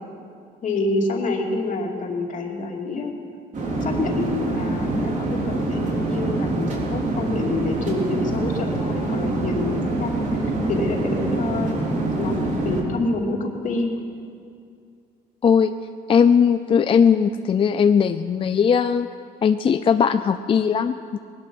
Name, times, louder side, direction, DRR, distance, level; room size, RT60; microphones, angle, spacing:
voice 1, 0.6-3.1 3.8-11.7 12.2-13.9, left 2 dB, 50° left, 1 dB, 2.5 m, -27 dB
sound 1, 3.5-12.8, right 2 dB, 50° right, 3.3 m, -25 dB
voice 2, 16.1-19.1 19.4-21.2, left 7 dB, 30° left, 9 dB, 0.5 m, -18 dB
19.5 x 11.5 x 6.2 m, 2.3 s
cardioid pair, 110°, 17 cm